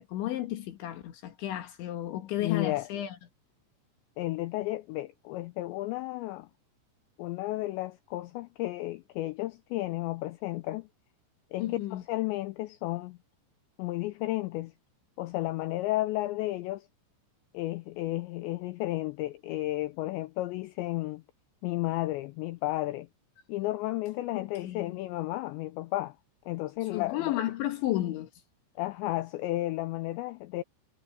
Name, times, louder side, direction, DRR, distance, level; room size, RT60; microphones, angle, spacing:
voice 1, 0.0-3.2 11.6-12.0 24.3-25.0 26.9-28.3, left 13 dB, 70° left, 3.6 m, -33 dB
voice 2, 2.1-2.9 4.2-6.5 7.2-10.9 11.5-13.2 13.8-14.7 15.2-16.9 17.5-21.2 21.6-23.1 23.5-26.2 26.5-27.4 28.8-30.6, left 17 dB, 90° left, 2.5 m, -33 dB
omnidirectional pair, 5.9 m